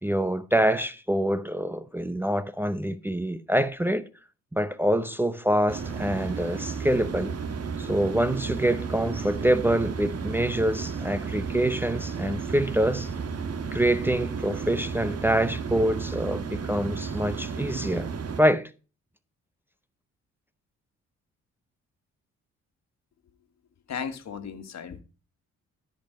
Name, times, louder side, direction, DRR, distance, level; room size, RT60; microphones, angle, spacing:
voice 1, 0.0-4.1 4.5-7.3 7.8-13.1 13.7-18.1 18.4-18.7, right 1 dB, 5° right, 0.7 m, -25 dB
sound 1, 5.7-18.4, right 5 dB, 55° right, 1.6 m, -33 dB
voice 2, 23.9-25.0, left 7 dB, 60° left, 1.8 m, -35 dB
13.0 x 5.3 x 5.3 m
cardioid pair, 75°, 30 cm